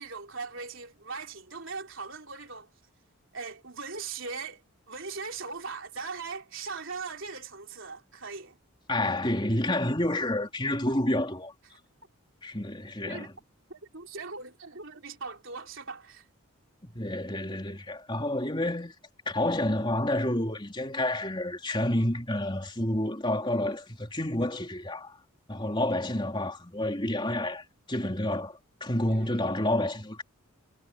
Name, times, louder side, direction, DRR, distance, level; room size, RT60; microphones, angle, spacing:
voice 1, 0.0-2.7 3.3-8.6 13.1-13.3 13.7-16.3 29.0-29.3, right 4 dB, 60° right, 3.8 m, -39 dB
voice 2, 8.9-11.5 12.4-13.3 16.8-18.9 19.3-25.2 25.5-30.2, left 1 dB, 20° left, 3.4 m, -29 dB
head